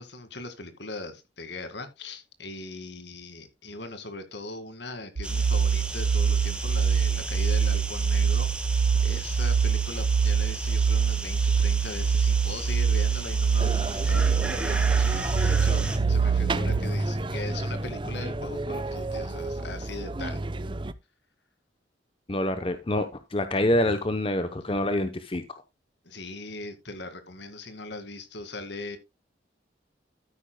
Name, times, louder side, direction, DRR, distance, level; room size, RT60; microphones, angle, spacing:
voice 1, 0.0-20.4 26.0-29.0, left 2 dB, 65° left, 2.0 m, -40 dB
sound 1, 5.2-16.0, right 2 dB, 5° right, 1.3 m, -37 dB
sound 2, 5.2-16.8, right 6 dB, 90° right, 0.6 m, -24 dB
sound 3, 13.6-20.9, right 2 dB, 25° right, 0.6 m, -31 dB
voice 2, 22.3-25.6, left 1 dB, 30° left, 0.7 m, -26 dB
13.0 x 9.7 x 2.2 m
head